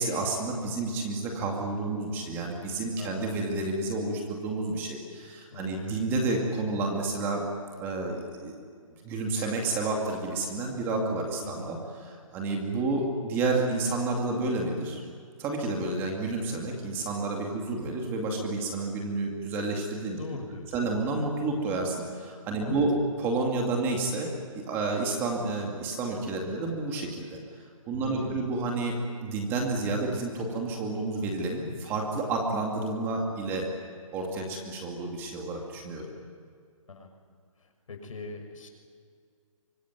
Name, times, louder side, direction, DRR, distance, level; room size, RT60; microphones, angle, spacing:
voice 1, 0.0-7.4 7.8-8.6 9.0-11.8 12.3-15.0 15.4-20.2 20.7-22.9 23.2-27.4 27.9-28.9 29.2-33.6 34.1-36.1, right 3 dB, 10° right, 1 dB, 2.4 m, -30 dB
voice 2, 3.0-3.5 5.5-6.0 11.4-11.7 20.2-20.8 22.6-22.8 28.0-28.5 36.9-37.1 37.6-38.7, left 4 dB, 70° left, 4 dB, 6.2 m, -41 dB
25.0 x 22.0 x 9.4 m, 2.1 s
hypercardioid pair, 170°, 18 cm